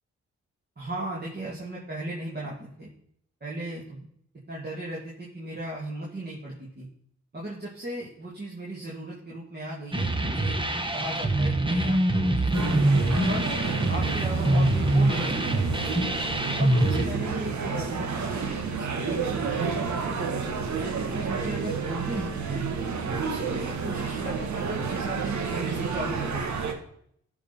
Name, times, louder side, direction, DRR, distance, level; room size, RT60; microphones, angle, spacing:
voice 1, 0.8-2.9 3.4-4.0 4.5-6.9 7.3-10.6 10.9-13.5 13.9-15.6 16.6-19.8 20.4-22.6 23.2-26.7, right 1 dB, 35° right, -5 dB, 2.7 m, -36 dB
sound 1, 9.9-17.0, right 1 dB, 15° right, 1.2 m, -24 dB
sound 2, 12.5-26.7, right 5 dB, 75° right, 1.4 m, -30 dB
12.5 x 5.5 x 4.3 m, 0.68 s
cardioid pair, 55°, 29 cm